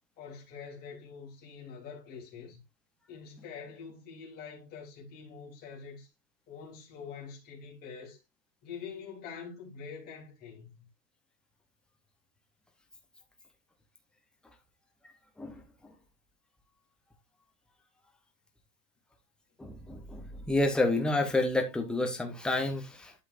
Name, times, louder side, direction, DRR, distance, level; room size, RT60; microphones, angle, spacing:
voice 1, 0.2-2.6 3.1-6.1 6.5-8.2 8.6-10.8, left 6 dB, 20° left, 3.4 m, -45 dB
voice 2, 15.4-15.9 19.6-23.1, left 2 dB, ahead, 0.8 m, -30 dB
11.5 x 5.6 x 2.5 m
supercardioid pair, 160°, 47 cm